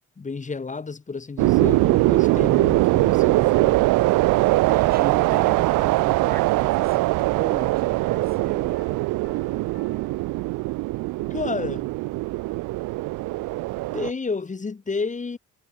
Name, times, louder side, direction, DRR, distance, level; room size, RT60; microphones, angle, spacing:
voice 1, 0.2-3.8 11.3-11.9 13.9-15.4, left 4 dB, 25° left, 1.5 m, -31 dB
sound 1, 1.4-14.1, right 20 dB, 85° right, 0.5 m, -21 dB
voice 2, 4.5-8.8, right 7 dB, 30° right, 0.7 m, -35 dB
Piano, 8.7-11.3, left 7 dB, 45° left, 2.7 m, -54 dB
cardioid pair, 90°, 30 cm